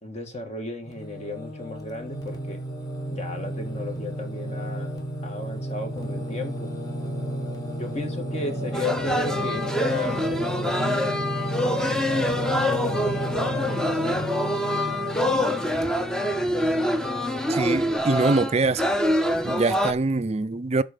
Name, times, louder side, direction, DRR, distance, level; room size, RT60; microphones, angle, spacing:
voice 1, 0.0-2.6 3.1-4.9 5.2-6.7 7.8-11.2 11.6-14.3, left 1 dB, 35° left, 1.8 m, -34 dB
Singing, 0.9-18.0, equal, 20° left, 2.0 m, -32 dB
sound 1, 8.7-19.9, equal, 5° left, 0.8 m, -25 dB
voice 2, 17.5-18.8 19.4-20.8, right 3 dB, 35° right, 0.5 m, -23 dB
12.0 x 4.1 x 5.2 m
head